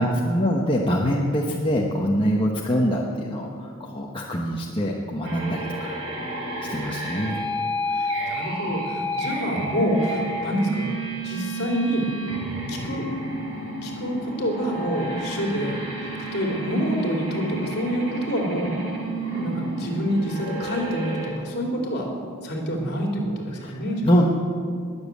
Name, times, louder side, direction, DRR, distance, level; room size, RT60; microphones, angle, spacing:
voice 1, 0.0-6.0 6.6-7.4 8.1-8.2 9.6-9.7 23.5-23.8 24.0-24.3, equal, 25° left, -2 dB, 1.1 m, -24 dB
sound 1, 5.2-21.3, right 1 dB, 75° right, 4.4 m, -31 dB
voice 2, 7.9-10.9 11.2-12.1 12.7-13.1 13.8-15.8 16.3-18.7 19.3-22.1 22.4-24.1, equal, 50° left, 0 dB, 3.1 m, -27 dB
20.5 x 7.3 x 8.4 m, 2.2 s
head